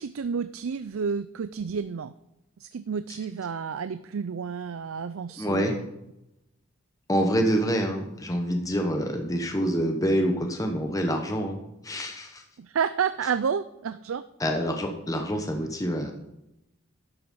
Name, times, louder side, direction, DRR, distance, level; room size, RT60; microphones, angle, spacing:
voice 1, 0.0-2.1 2.6-5.9 12.6-14.2, right 6 dB, 80° right, 13 dB, 0.4 m, -30 dB
voice 2, 5.4-5.8 7.1-11.6 11.8-12.4 14.4-16.1, equal, 15° left, 4 dB, 1.1 m, -26 dB
12.0 x 7.9 x 5.4 m, 0.88 s
head